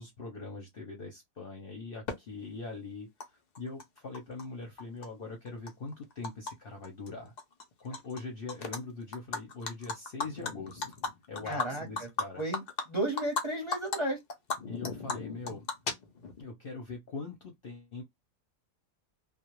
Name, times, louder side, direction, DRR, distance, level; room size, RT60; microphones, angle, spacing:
voice 1, 0.0-7.3 7.8-11.0 11.3-12.4 14.7-15.7 16.4-18.0, left 3 dB, 55° left, 0.7 m, -42 dB
Animal, 2.1-2.2 3.2-3.3 3.5-4.4 4.8-6.5 6.8-7.1 7.4-8.2 8.5-8.8 9.1-13.4 13.7-14.0 14.3-16.4, left 4 dB, 85° left, 0.3 m, -36 dB
voice 2, 11.5-11.8 12.4-14.2, right 1 dB, 25° right, 0.7 m, -33 dB
2.3 x 2.0 x 2.9 m
omnidirectional pair, 1.5 m